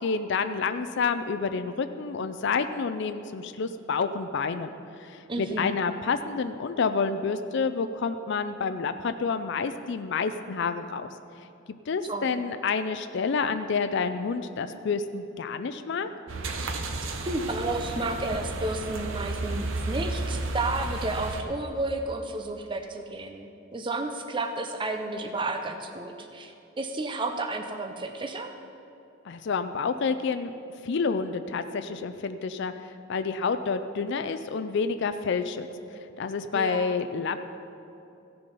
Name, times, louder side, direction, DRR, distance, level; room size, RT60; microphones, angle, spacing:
voice 1, 0.0-4.7 5.0-11.1 11.9-16.1 29.2-30.5 30.8-35.7 36.2-37.4, left 5 dB, 60° left, 10 dB, 0.4 m, -29 dB
voice 2, 5.3-5.7 12.0-12.4 17.2-28.5 36.5-37.0, right 2 dB, 25° right, 5 dB, 0.5 m, -32 dB
sound 1, 16.3-21.4, right 2 dB, 70° right, 0.8 m, -32 dB
15.0 x 6.9 x 5.4 m, 2.7 s
head